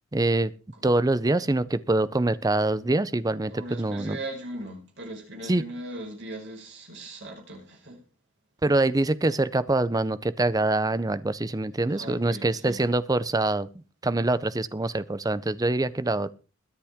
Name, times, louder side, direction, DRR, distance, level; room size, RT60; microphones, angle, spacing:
voice 1, 0.1-0.5 0.8-4.2 5.5-5.6 8.6-13.7 14.0-16.3, right 2 dB, 15° right, 0.5 m, -24 dB
voice 2, 3.5-8.0 11.9-12.9, right 1 dB, 60° right, 5.1 m, -39 dB
22.0 x 7.4 x 3.6 m
head